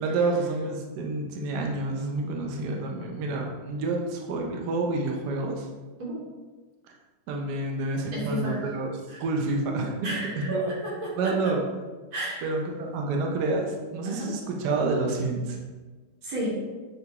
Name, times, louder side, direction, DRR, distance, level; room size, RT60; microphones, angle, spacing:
voice 1, 0.0-5.7 7.3-8.9 9.2-10.1 10.3-10.7 11.2-11.6 12.4-15.6, right 3 dB, 70° right, 1 dB, 1.0 m, -28 dB
voice 2, 8.1-8.7 9.1-9.2 10.0-11.4 12.1-12.5 14.1-14.3 16.2-16.6, equal, 85° right, -6 dB, 2.1 m, -32 dB
6.6 x 2.3 x 2.8 m, 1.3 s
omnidirectional pair, 2.1 m